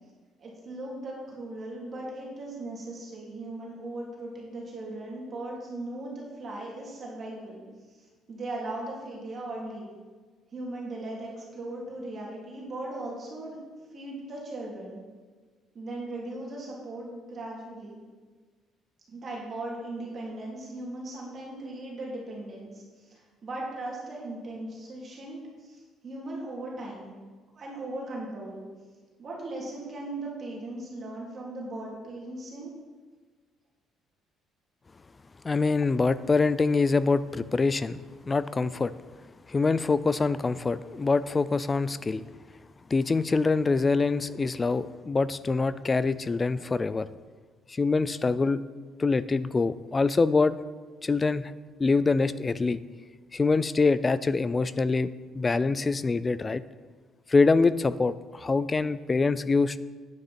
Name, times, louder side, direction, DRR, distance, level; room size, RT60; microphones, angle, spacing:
voice 1, 0.4-7.6 7.9-9.9 10.5-13.6 13.9-15.0 15.7-18.0 19.1-27.2 27.5-28.6 29.2-32.7, right 2 dB, 40° right, -4 dB, 3.0 m, -38 dB
voice 2, 35.4-38.0 38.3-38.9 39.5-42.2 42.9-47.1 47.7-48.6 49.0-50.6 51.0-51.5 51.8-52.8 53.3-55.1 55.3-56.6 57.3-59.8, left 4 dB, 20° left, 16 dB, 0.4 m, -25 dB
10.0 x 9.6 x 4.4 m, 1.4 s
cardioid pair, 130°, 0 cm